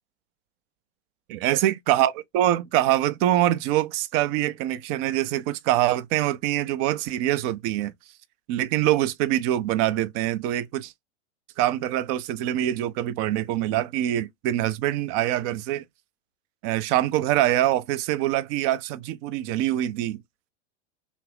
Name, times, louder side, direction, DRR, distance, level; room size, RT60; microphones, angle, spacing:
voice 1, 1.3-7.9 8.5-10.9 11.6-15.8 16.6-20.2, right 13 dB, 30° right, 0.4 m, -24 dB
2.9 x 2.4 x 3.2 m
hypercardioid pair, 100°, 37 cm